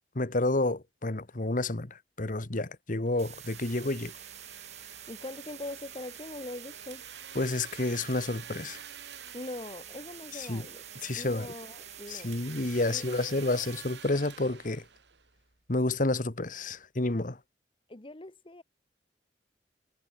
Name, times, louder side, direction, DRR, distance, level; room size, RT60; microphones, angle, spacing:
voice 1, 0.1-4.1 7.3-8.8 10.3-10.6 11.0-11.5 12.1-14.8 15.7-17.4, left 2 dB, 50° left, 1.5 m, -30 dB
Domestic sounds home sounds, 3.1-15.6, right 7 dB, 85° right, 3.1 m, -50 dB
sound 1, 3.2-14.1, right 11 dB, 40° right, 1.6 m, -48 dB
voice 2, 5.1-7.0 9.3-10.8 11.1-12.3 12.8-13.7 17.9-18.6, left 2 dB, 30° left, 1.3 m, -42 dB
head